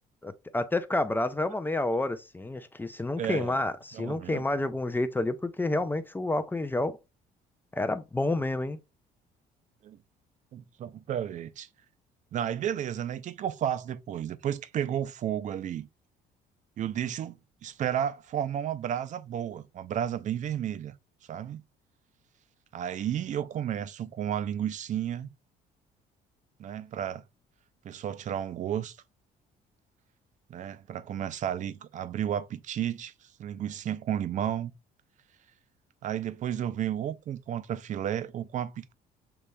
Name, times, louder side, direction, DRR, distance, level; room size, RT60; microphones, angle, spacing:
voice 1, 0.2-7.0 7.7-8.8, left 2 dB, 10° left, 0.4 m, -29 dB
voice 2, 3.2-3.6 3.9-4.4 9.8-10.0 10.5-11.7 12.3-15.9 16.8-20.9 21.3-21.6 22.7-25.3 26.6-27.2 27.8-29.0 30.5-34.7 36.0-38.9, right 10 dB, 45° right, 0.5 m, -32 dB
6.8 x 3.1 x 2.2 m
cardioid pair, 110°, 17 cm